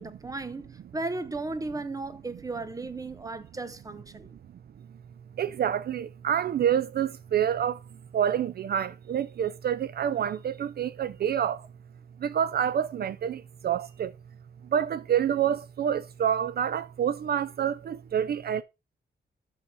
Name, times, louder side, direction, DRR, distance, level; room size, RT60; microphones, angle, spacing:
voice 1, 0.0-4.4, right 3 dB, 20° right, 0.8 m, -35 dB
voice 2, 5.4-7.8 8.1-11.7 12.2-14.1 14.7-18.6, right 9 dB, 60° right, 0.4 m, -27 dB
6.4 x 6.0 x 5.4 m
wide cardioid pair, 130°, 18 cm